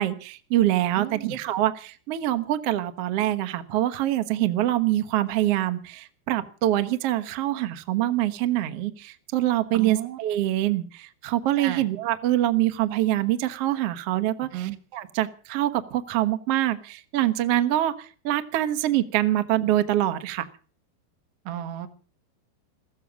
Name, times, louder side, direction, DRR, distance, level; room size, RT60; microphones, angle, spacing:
voice 1, 0.0-20.5, right 13 dB, 70° right, 11 dB, 1.4 m, -25 dB
voice 2, 1.0-1.4 9.7-10.2 11.6-11.9 14.5-14.8 21.5-21.9, right 13 dB, 85° right, 9 dB, 3.7 m, -33 dB
15.5 x 15.0 x 6.1 m, 0.39 s
omnidirectional pair, 4.7 m